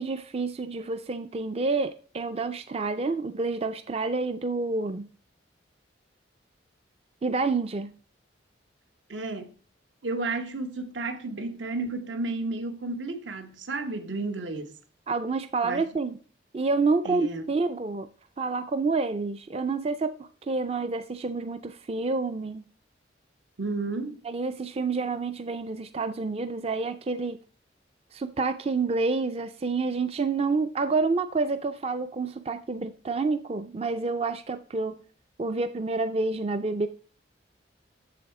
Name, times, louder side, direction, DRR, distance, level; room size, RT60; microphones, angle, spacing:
voice 1, 0.0-5.1 7.2-7.9 15.1-16.1 16.5-18.1 18.4-20.2 20.5-22.6 24.2-27.4 28.1-35.0 35.4-36.9, right 3 dB, 30° right, 0.4 m, -28 dB
voice 2, 9.1-9.5 10.0-14.7 15.6-15.8 17.0-17.5 23.6-24.2, right 3 dB, 75° right, 1.0 m, -32 dB
7.7 x 7.1 x 4.8 m
head